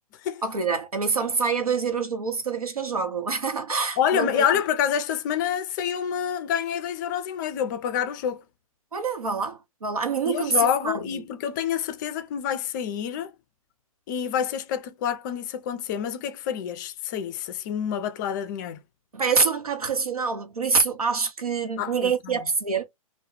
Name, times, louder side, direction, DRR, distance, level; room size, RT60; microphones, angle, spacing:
voice 1, 0.4-4.4 8.9-11.1 19.1-22.8, right 5 dB, 90° right, 0.8 m, -26 dB
voice 2, 4.0-8.4 10.2-13.3 14.1-18.8 21.8-22.4, left 8 dB, 35° left, 0.4 m, -27 dB
2.2 x 2.1 x 3.0 m
hypercardioid pair, 125°, 18 cm